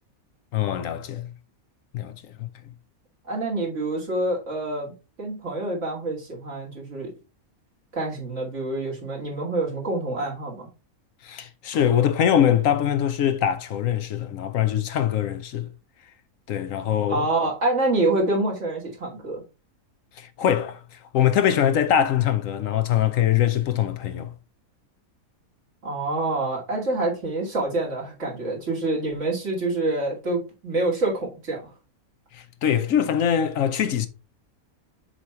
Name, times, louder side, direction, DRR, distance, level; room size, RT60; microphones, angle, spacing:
voice 1, 0.5-1.3 1.9-2.5 11.2-15.7 16.5-17.2 20.2-24.3 32.3-34.1, left 9 dB, 70° left, 1.0 m, -23 dB
voice 2, 3.2-7.1 7.9-10.7 17.1-19.4 25.8-31.7, right 2 dB, 55° right, 2.7 m, -26 dB
7.0 x 3.0 x 5.6 m
omnidirectional pair, 1.5 m